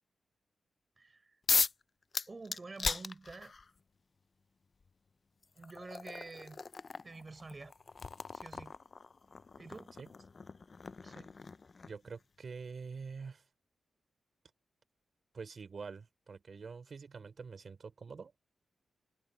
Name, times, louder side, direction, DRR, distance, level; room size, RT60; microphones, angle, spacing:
voice 1, 1.0-1.3 2.3-3.5 5.6-6.6 7.0-7.7 8.3-8.7 9.6-9.9 11.0-11.3, right 3 dB, 30° right, 6.3 m, -48 dB
sound 1, 1.5-1.8 2.1-3.7 4.8-4.9 5.4-12.1, left 4 dB, 40° left, 0.4 m, -37 dB
voice 2, 11.8-13.5 15.3-18.4, right 5 dB, 50° right, 3.3 m, -46 dB
wide cardioid pair, 115°, 0 cm